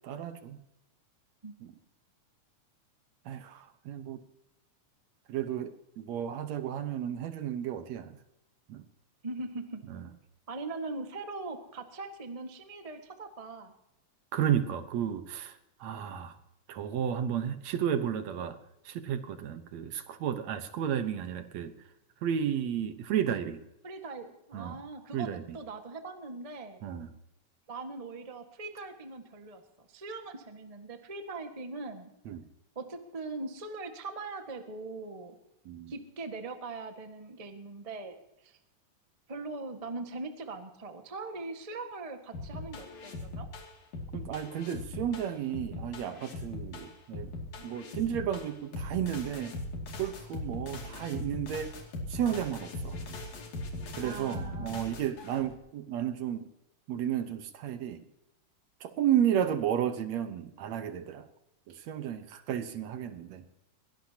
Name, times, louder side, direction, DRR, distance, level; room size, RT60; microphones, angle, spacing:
voice 1, 0.0-0.6 1.6-1.7 3.3-4.2 5.3-8.2 8.7-8.8 9.9-10.0 14.3-16.3 16.7-18.6 18.9-21.7 22.2-23.6 24.5-24.8 25.1-25.6 26.8-27.1 32.3-32.4 35.7-35.9 44.1-47.3 47.6-49.5 50.0-51.7 52.1-53.0 54.0-56.5 56.9-58.0 58.8-61.3 61.7-63.4, right 9 dB, 65° right, 10 dB, 2.1 m, -32 dB
voice 2, 9.2-9.8 10.5-13.7 23.8-26.8 27.7-32.1 32.7-35.4 35.9-38.6 39.3-43.5 54.0-54.9, right 3 dB, 35° right, 5 dB, 0.5 m, -41 dB
sound 1, 42.3-55.5, left 2 dB, 65° left, 3.8 m, -40 dB
22.5 x 17.5 x 2.9 m, 0.88 s
omnidirectional pair, 3.6 m